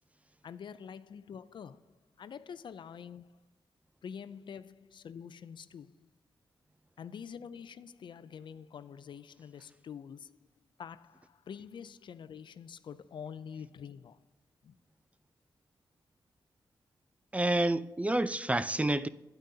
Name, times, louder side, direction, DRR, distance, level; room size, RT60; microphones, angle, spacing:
voice 1, 0.4-1.8 2.2-3.3 4.0-6.1 7.0-10.4 10.8-14.2 14.6-14.7, left 7 dB, 65° left, 0.4 m, -46 dB
voice 2, 17.3-19.1, right 1 dB, 15° right, 0.4 m, -28 dB
9.0 x 8.9 x 2.8 m
cardioid pair, 50°, 9 cm